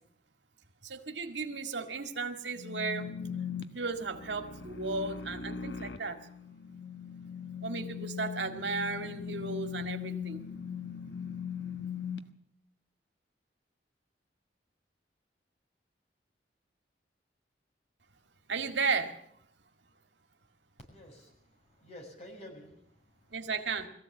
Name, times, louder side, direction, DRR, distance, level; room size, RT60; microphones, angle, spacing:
voice 1, 0.8-3.1 3.7-6.2 7.6-10.4 18.5-19.2 23.3-23.9, right 4 dB, 85° right, 6 dB, 2.0 m, -34 dB
sound 1, 2.6-12.2, left 7 dB, 85° left, 1.3 m, -40 dB
voice 2, 20.8-23.4, left 1 dB, 40° left, 2 dB, 6.6 m, -51 dB
21.5 x 15.5 x 8.5 m, 0.71 s
head